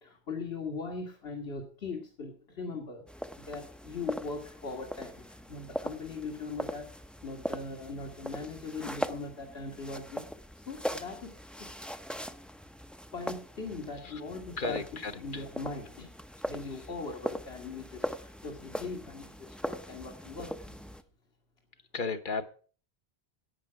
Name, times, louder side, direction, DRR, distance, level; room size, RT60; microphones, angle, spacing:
voice 1, 0.0-3.0 3.5-6.9 7.2-10.2 10.6-11.7 13.1-14.8 15.2-16.1 16.5-20.5, left 3 dB, 80° left, 1 dB, 2.0 m, -40 dB
sound 1, 3.1-21.0, equal, ahead, 0.4 m, -40 dB
voice 2, 14.6-15.7 16.0-16.1 16.7-16.8 18.6-18.8 21.9-22.4, left 4 dB, 55° left, 9 dB, 1.1 m, -36 dB
11.5 x 8.7 x 5.9 m, 0.40 s
omnidirectional pair, 1.0 m